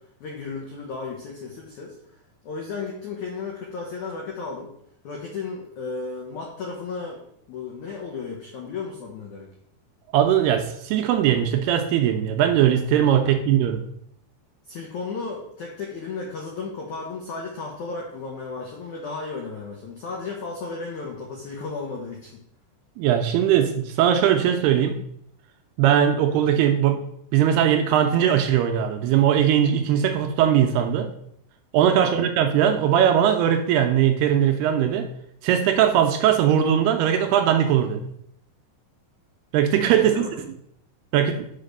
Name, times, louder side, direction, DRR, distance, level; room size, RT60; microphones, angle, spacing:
voice 1, 0.2-4.7 5.0-7.2 7.5-9.5 13.2-13.3 14.6-22.4 31.9-32.3 40.0-40.4, left 4 dB, 75° left, -1 dB, 1.8 m, -34 dB
voice 2, 10.1-13.8 23.0-25.0 25.8-27.0 27.3-31.1 31.7-35.1 35.4-38.1 39.5-40.2 41.1-41.5, right 9 dB, 80° right, 5 dB, 2.5 m, -20 dB
5.8 x 4.9 x 6.5 m, 0.73 s
omnidirectional pair, 4.8 m